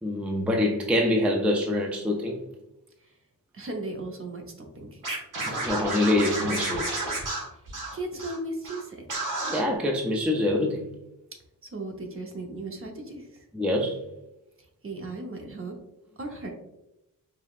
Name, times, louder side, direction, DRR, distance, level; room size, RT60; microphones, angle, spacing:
voice 1, 0.0-2.4 5.4-7.0 9.5-10.9 13.5-14.0, left 1 dB, 5° right, 1 dB, 0.4 m, -25 dB
voice 2, 3.5-5.0 7.5-7.6 7.9-9.1 11.6-13.5 14.8-15.7 16.2-16.5, right 2 dB, 40° right, 2 dB, 0.8 m, -36 dB
Scratching (performance technique), 5.0-8.4 8.6-8.8 9.1-9.6, right 2 dB, 60° right, 1.5 m, -31 dB
4.9 x 3.1 x 2.4 m, 0.90 s
wide cardioid pair, 150°, 35 cm